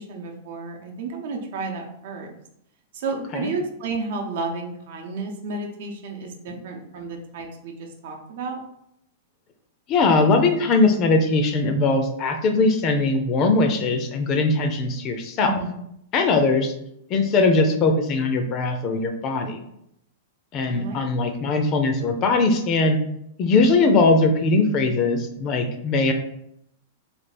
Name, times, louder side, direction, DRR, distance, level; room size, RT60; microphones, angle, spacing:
voice 1, 0.0-2.3 2.9-8.6 15.4-15.9 20.7-21.0, right 3 dB, 65° right, 2 dB, 0.8 m, -32 dB
voice 2, 9.9-15.5 16.1-16.7 17.1-19.6 20.5-23.0 23.4-26.1, left 3 dB, 35° left, 6 dB, 0.5 m, -20 dB
3.4 x 2.4 x 4.1 m, 0.77 s
supercardioid pair, 150°, 0 cm